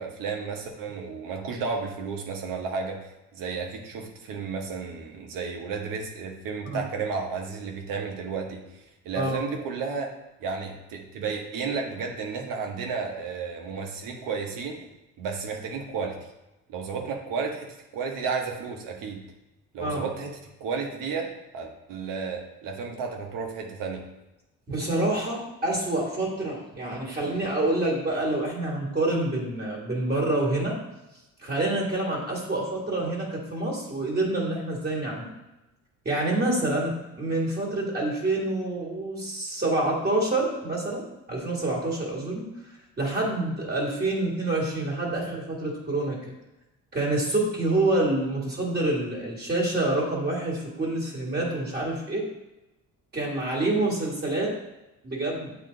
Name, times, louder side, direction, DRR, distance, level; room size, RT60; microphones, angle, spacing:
voice 1, 0.0-3.0 3.3-10.1 10.4-14.8 15.2-16.2 16.7-19.2 19.7-24.0, right 5 dB, 75° right, 2 dB, 1.1 m, -32 dB
voice 2, 24.7-30.8 31.4-35.3 36.0-42.5 43.0-46.3 46.9-52.2 53.1-54.5 55.0-55.6, right 2 dB, 30° right, -3 dB, 1.7 m, -27 dB
7.7 x 3.2 x 3.9 m, 0.98 s
cardioid pair, 95°, 33 cm